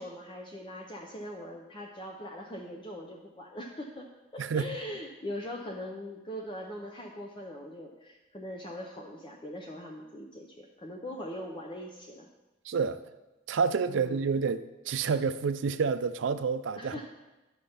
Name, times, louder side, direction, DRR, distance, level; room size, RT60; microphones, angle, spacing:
voice 1, 0.0-12.3 13.9-14.2 16.8-17.1, left 1 dB, 25° left, 0 dB, 0.6 m, -41 dB
voice 2, 4.4-4.8 12.7-13.0 13.5-17.1, right 5 dB, 70° right, 12 dB, 0.4 m, -29 dB
10.5 x 5.6 x 3.4 m, 1.1 s
head